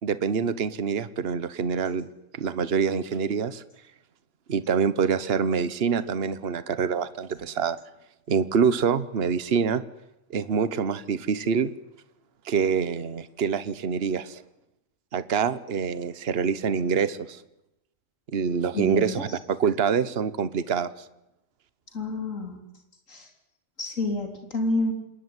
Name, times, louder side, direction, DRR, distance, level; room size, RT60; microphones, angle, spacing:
voice 1, 0.0-2.1 2.3-3.6 4.5-7.8 8.3-9.8 10.3-11.7 12.4-14.4 15.1-17.4 18.3-20.9, right 6 dB, 50° right, 15 dB, 1.3 m, -25 dB
voice 2, 18.7-19.3 21.9-22.6 23.1-23.3 23.8-24.9, left 2 dB, 70° left, 4 dB, 4.4 m, -28 dB
27.5 x 21.5 x 9.7 m, 0.89 s
omnidirectional pair, 1.4 m